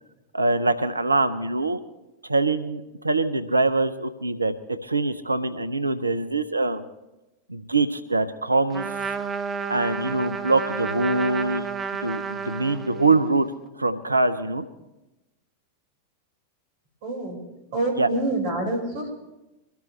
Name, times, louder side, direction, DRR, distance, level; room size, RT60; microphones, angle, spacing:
voice 1, 0.3-1.8 2.3-4.5 4.8-6.8 7.5-8.9 9.7-11.7 12.0-14.7 18.0-18.1, right 3 dB, 80° right, 11 dB, 0.6 m, -23 dB
Trumpet, 8.7-13.3, right 6 dB, 20° right, 0.8 m, -31 dB
voice 2, 17.0-17.4 17.7-19.1, right 2 dB, 50° right, 1 dB, 5.0 m, -26 dB
23.0 x 13.0 x 3.2 m, 0.98 s
figure-of-eight pair, 90°, 0 cm